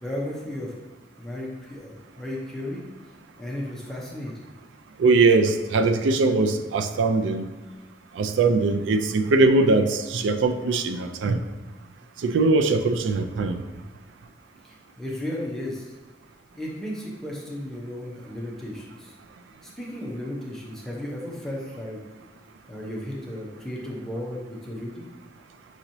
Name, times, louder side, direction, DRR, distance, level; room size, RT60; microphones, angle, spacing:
voice 1, 0.0-0.7 1.2-2.8 3.4-4.5 14.6-15.9 16.5-19.1 19.6-22.0 22.7-25.1, left 1 dB, 5° left, -4 dB, 0.6 m, -34 dB
voice 2, 5.0-7.5 8.2-11.4 12.2-13.6, right 3 dB, 85° right, 7 dB, 0.3 m, -21 dB
6.1 x 3.0 x 2.7 m, 1.2 s
head